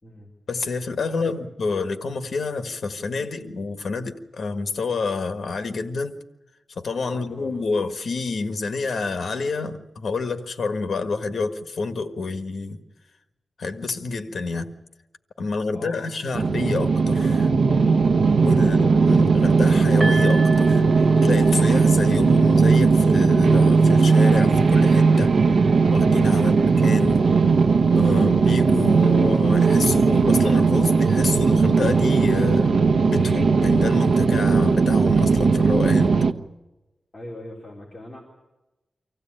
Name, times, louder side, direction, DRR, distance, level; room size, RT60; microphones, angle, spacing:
voice 1, 0.5-6.2 6.7-12.8 13.6-14.7 15.4-17.5 18.4-20.8 21.2-25.3 25.9-27.2 27.9-32.7 33.1-36.1, left 4 dB, 65° left, 7 dB, 1.6 m, -28 dB
voice 2, 7.1-7.6 15.7-16.6 18.6-19.3 37.1-38.2, left 1 dB, 20° left, -4 dB, 3.9 m, -41 dB
sound 1, 16.3-36.3, right 4 dB, 90° right, 0.9 m, -18 dB
sound 2, 20.0-27.2 27.5-27.7 28.0-28.1, right 2 dB, 35° right, 3.5 m, -36 dB
25.0 x 15.5 x 8.9 m, 1.0 s
wide cardioid pair, 150°, 0 cm